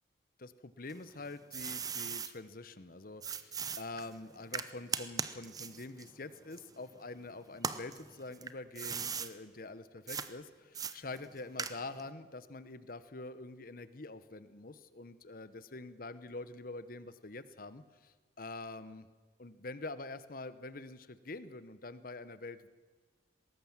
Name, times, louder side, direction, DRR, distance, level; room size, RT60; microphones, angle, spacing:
voice 1, 0.4-19.1 19.4-22.7, left 2 dB, 50° left, 13 dB, 1.0 m, -46 dB
sound 1, 0.9-2.3 3.2-7.1 7.5-9.3 10.1-10.3 10.7-12.1, right 6 dB, 20° right, 0.7 m, -39 dB
20.5 x 18.0 x 7.3 m, 1.4 s
head